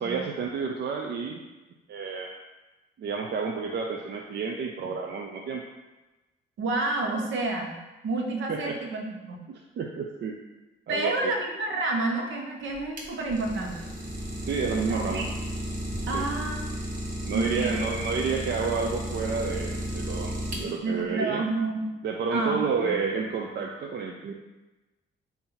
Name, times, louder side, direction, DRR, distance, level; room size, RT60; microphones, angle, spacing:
voice 1, 0.0-1.4 1.9-2.4 3.0-5.6 8.5-8.8 9.5-10.4 10.9-11.3 14.4-15.3 16.1-16.3 17.2-21.4 22.0-24.3, right 5 dB, 60° right, 1 dB, 0.6 m, -30 dB
voice 2, 6.6-7.8 8.0-9.4 10.9-13.9 14.9-15.2 16.1-16.6 17.3-17.8 20.8-21.8 22.3-22.6, right 2 dB, 75° right, 1 dB, 1.1 m, -29 dB
Idling, 12.7-21.0, equal, 40° right, 1.4 m, -33 dB
8.5 x 2.8 x 4.0 m, 1.1 s
cardioid pair, 90°, 20 cm